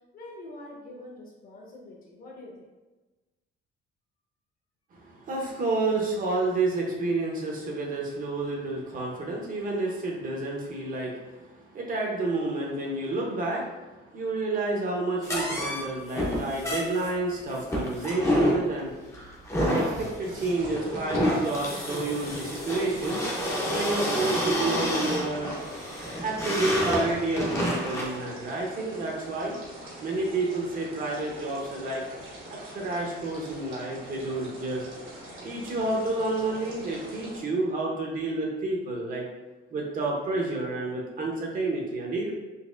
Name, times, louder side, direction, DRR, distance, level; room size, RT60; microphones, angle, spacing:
voice 1, 0.1-2.7, left 1 dB, 45° left, -2 dB, 0.9 m, -45 dB
voice 2, 4.9-19.0 19.6-23.2 23.7-25.5 26.2-29.5 30.0-32.0 32.5-34.8 35.4-39.3 39.7-42.3, right 2 dB, 45° right, -1 dB, 0.7 m, -30 dB
sound 1, 15.2-28.2, equal, 15° left, 0.6 m, -29 dB
sound 2, 20.2-37.4, right 1 dB, 75° right, 1.3 m, -44 dB
4.1 x 2.8 x 2.4 m, 1.2 s
cardioid pair, 160°, 20 cm